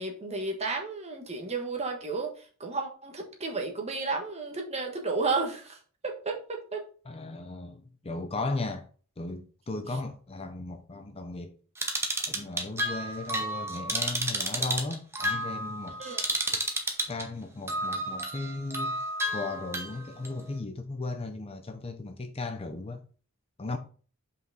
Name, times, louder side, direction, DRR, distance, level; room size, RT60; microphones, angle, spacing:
voice 1, 0.0-2.3 2.6-5.8 6.0-6.8 16.0-16.2, right 3 dB, 30° right, 1.3 m, -32 dB
voice 2, 7.1-8.9 9.2-11.5 12.2-16.0 17.1-19.0 19.3-23.0 23.6-23.8, left 3 dB, 25° left, 0.6 m, -36 dB
sound 1, 11.8-17.2 17.7-20.3, right 1 dB, 10° right, 0.9 m, -31 dB
5.7 x 4.9 x 4.0 m
head